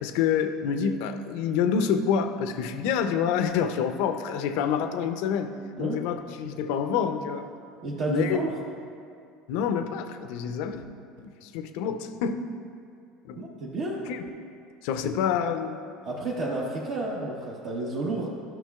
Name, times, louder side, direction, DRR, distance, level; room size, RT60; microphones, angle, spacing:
voice 1, 0.0-5.5 5.8-7.5 8.1-8.4 9.5-10.8 11.2-12.4 13.2-13.4 14.1-14.2 14.8-15.8, left 7 dB, 70° left, 9 dB, 0.5 m, -27 dB
voice 2, 7.8-8.5 13.4-14.1 16.0-18.3, right 2 dB, 60° right, -4 dB, 1.0 m, -31 dB
12.0 x 5.9 x 2.3 m, 2.3 s
hypercardioid pair, 85°, 0 cm